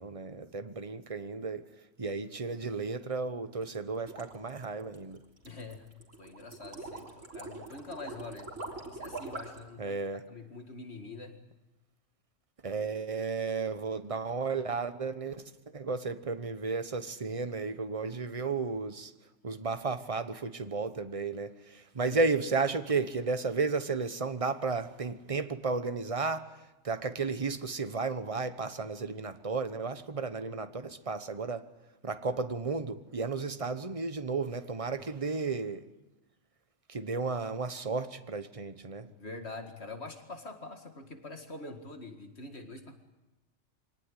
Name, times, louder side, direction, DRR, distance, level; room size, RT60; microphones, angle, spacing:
voice 1, 0.0-1.6 2.0-5.2 9.8-10.2 12.6-15.4 15.7-19.1 19.4-31.7 32.0-35.8 36.9-39.1, right 4 dB, 30° right, 1.1 m, -33 dB
sound 1, 3.6-9.7, right 2 dB, 85° right, 3.8 m, -43 dB
voice 2, 5.4-5.8 6.2-8.5 8.8-11.4 39.1-42.9, left 3 dB, 60° left, 2.3 m, -45 dB
24.5 x 18.5 x 9.9 m
omnidirectional pair, 1.3 m